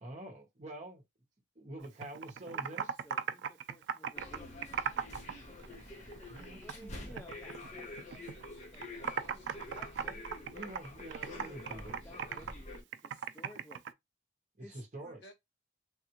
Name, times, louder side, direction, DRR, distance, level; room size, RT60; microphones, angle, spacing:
voice 1, 0.0-1.0 1.6-2.9 6.3-7.2 10.5-12.3 14.6-15.2, right 1 dB, 40° right, 0.9 m, -47 dB
Computer keyboard, 1.8-5.3 5.6-6.8 7.2-8.5 8.7-13.9, right 7 dB, 75° right, 0.4 m, -38 dB
voice 2, 2.4-4.8 6.6-8.3 8.7-8.8 9.7-10.5 11.3-13.8 14.6-15.1, left 1 dB, 10° left, 0.4 m, -56 dB
sound 1, 4.1-12.8, left 2 dB, 35° left, 0.9 m, -48 dB
voice 3, 7.9-9.7 15.2-15.3, equal, 65° left, 1.2 m, -59 dB
3.4 x 2.3 x 2.9 m
head